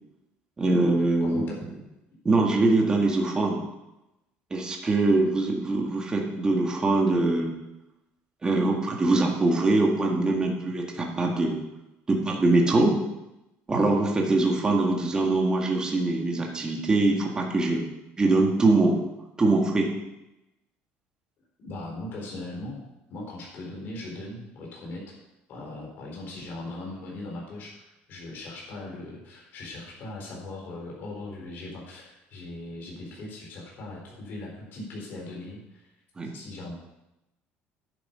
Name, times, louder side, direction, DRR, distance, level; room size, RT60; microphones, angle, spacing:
voice 1, 0.6-1.4 2.3-3.6 4.5-7.5 8.4-11.6 12.1-13.0 13.7-17.8 18.2-19.0 19.4-19.9 36.2-36.3, right 2 dB, 20° right, 0 dB, 1.8 m, -23 dB
voice 2, 1.2-1.6 21.6-22.8 23.1-25.1 25.5-27.8 28.1-35.9 36.2-36.7, left 2 dB, 50° left, -2 dB, 4.6 m, -39 dB
10.0 x 8.6 x 5.6 m, 0.93 s
cardioid pair, 145°, 4 cm